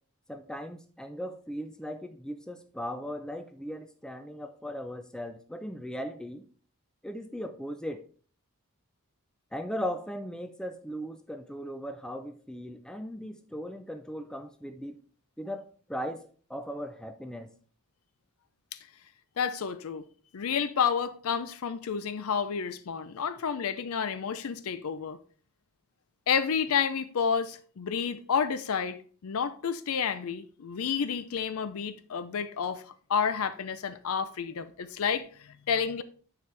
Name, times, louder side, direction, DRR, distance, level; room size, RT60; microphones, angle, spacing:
voice 1, 0.3-6.4 7.0-8.0 9.5-15.0 15.4-17.5, equal, 5° left, 0.4 m, -38 dB
voice 2, 19.4-20.1 20.3-25.2 26.3-32.8 33.1-36.0, left 6 dB, 70° left, 0.5 m, -30 dB
9.4 x 5.0 x 3.3 m
head